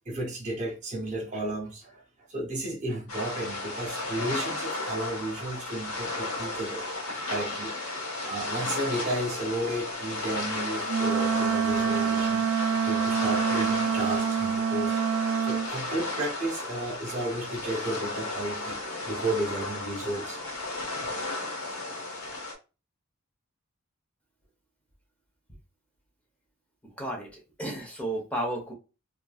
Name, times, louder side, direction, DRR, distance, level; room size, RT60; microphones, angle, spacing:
voice 1, 0.1-6.9 7.3-7.8 8.2-15.0 15.4-18.8 19.1-20.4, right 1 dB, 35° right, 0.6 m, -33 dB
sound 1, 3.1-22.5, left 2 dB, 90° left, 1.1 m, -34 dB
Wind instrument woodwind instrument, 10.9-15.7, right 7 dB, 85° right, 0.3 m, -26 dB
voice 2, 27.0-28.7, right 1 dB, 5° left, 0.9 m, -33 dB
3.1 x 2.5 x 2.3 m
head